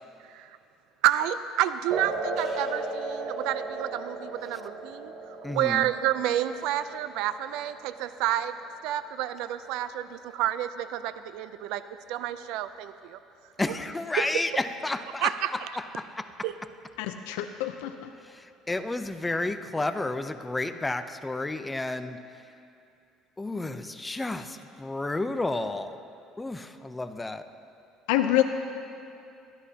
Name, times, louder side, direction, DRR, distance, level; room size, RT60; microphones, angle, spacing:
voice 1, 1.0-8.6 8.8-11.8 12.1-13.2 14.2-14.4 15.2-15.7 16.4-16.5, right 12 dB, 75° right, 13 dB, 0.5 m, -29 dB
sound 1, 1.9-8.9, right 2 dB, 50° right, 3.3 m, -36 dB
voice 2, 5.4-5.8 13.6-15.6 16.0-16.3 18.3-22.2 23.4-26.0 26.4-27.4, left 2 dB, 15° left, 9 dB, 0.6 m, -31 dB
voice 3, 17.0-18.1 28.1-28.4, left 13 dB, 90° left, 6 dB, 0.6 m, -26 dB
21.0 x 13.5 x 2.9 m, 2.6 s
supercardioid pair, 105°, 0 cm